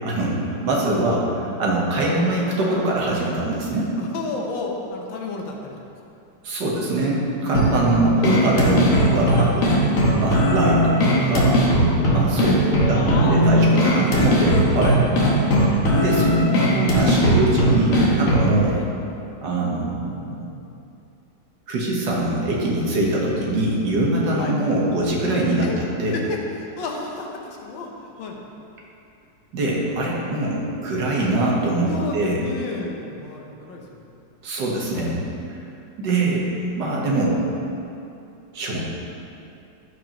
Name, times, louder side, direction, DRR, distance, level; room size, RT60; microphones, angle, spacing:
voice 1, 0.0-1.2 1.6-3.9 6.4-9.8 10.2-11.6 12.1-12.6 12.9-15.2 15.6-18.8 19.4-20.4 21.7-25.7 26.0-26.2 29.5-32.4 34.4-35.2 36.0-36.5 36.8-37.4 38.5-38.8, right 2 dB, 70° right, -3 dB, 1.8 m, -23 dB
voice 2, 4.0-5.7 12.9-14.1 18.7-18.9 22.4-22.5 24.4-24.6 25.6-25.8 26.1-28.4 31.8-34.1, left 3 dB, 80° left, 0 dB, 1.7 m, -32 dB
sound 1, 7.5-18.6, equal, 50° left, 1.3 m, -18 dB
14.0 x 4.7 x 3.0 m, 2.7 s
omnidirectional pair, 2.0 m